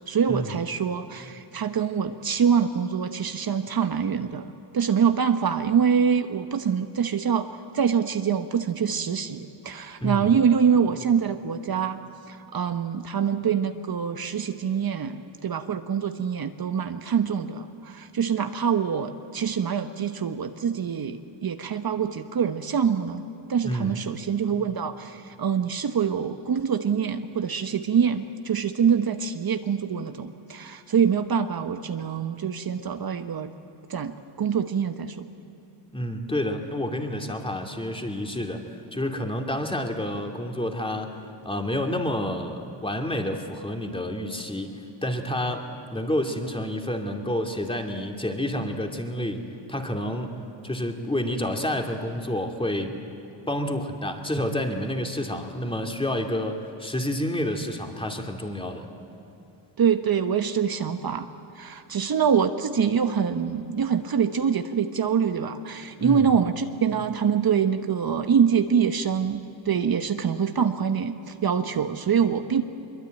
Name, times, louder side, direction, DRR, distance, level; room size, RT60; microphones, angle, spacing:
voice 1, 0.1-7.5 7.7-12.0 12.3-23.2 23.5-33.5 33.9-35.3 59.8-61.3 61.5-72.6, right 7 dB, 50° right, 8 dB, 1.1 m, -25 dB
voice 2, 10.0-10.3 23.6-23.9 35.9-38.7 38.9-44.7 45.0-50.4 50.6-53.0 53.5-58.9 66.0-66.3, left 1 dB, 10° left, 3 dB, 2.5 m, -29 dB
23.0 x 23.0 x 9.2 m, 3.0 s
cardioid pair, 105°, 47 cm